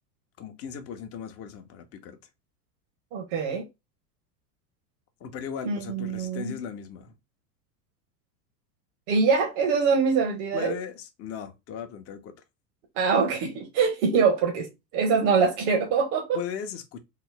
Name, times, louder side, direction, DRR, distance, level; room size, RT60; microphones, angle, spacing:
voice 1, 0.4-2.2 5.2-7.1 10.5-12.3 16.3-17.0, left 7 dB, 30° left, 0.6 m, -37 dB
voice 2, 3.1-3.7 5.6-6.6 9.1-10.7 12.9-16.4, right 5 dB, 60° right, 1.1 m, -24 dB
3.1 x 2.0 x 3.8 m
hypercardioid pair, 100°, 50 cm